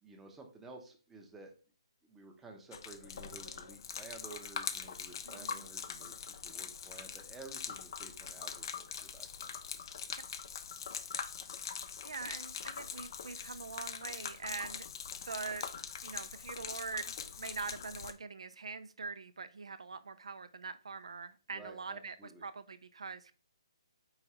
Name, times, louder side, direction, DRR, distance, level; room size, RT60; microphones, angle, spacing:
voice 1, 0.0-1.5 2.0-9.5 21.5-22.4, right 3 dB, 5° right, 1 dB, 0.6 m, -53 dB
Gurgling / Liquid, 2.7-18.1, left 7 dB, 45° left, 0.4 m, -43 dB
voice 2, 5.2-5.7 10.2-10.3 12.0-14.9 15.3-15.7 16.0-22.2 22.4-23.3, right 4 dB, 85° right, 11 dB, 0.4 m, -43 dB
4.8 x 2.5 x 4.2 m, 0.36 s
hypercardioid pair, 155°, 3 cm